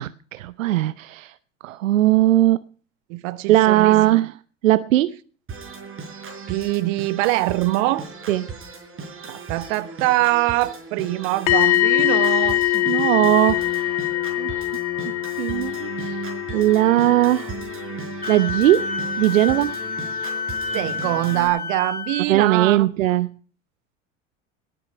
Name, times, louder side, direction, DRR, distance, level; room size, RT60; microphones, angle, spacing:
voice 1, 0.0-1.3 1.6-2.6 3.5-4.3 4.6-5.2 8.3-8.5 12.9-13.9 14.4-14.7 15.0-17.5 18.3-19.8 22.3-23.3, right 15 dB, 85° right, 0.6 m, -19 dB
voice 2, 3.1-4.0 6.5-8.1 9.3-12.6 20.7-22.9, right 17 dB, 60° right, 1.2 m, -23 dB
Organ, 5.5-21.5, right 5 dB, 35° right, 4.9 m, -36 dB
sound 1, 11.5-19.3 19.6-19.9, left 16 dB, 60° left, 1.4 m, -24 dB
Wind instrument woodwind instrument, 18.2-22.3, left 5 dB, 20° left, 2.5 m, -29 dB
18.5 x 8.9 x 5.8 m
hypercardioid pair, 80°, 38 cm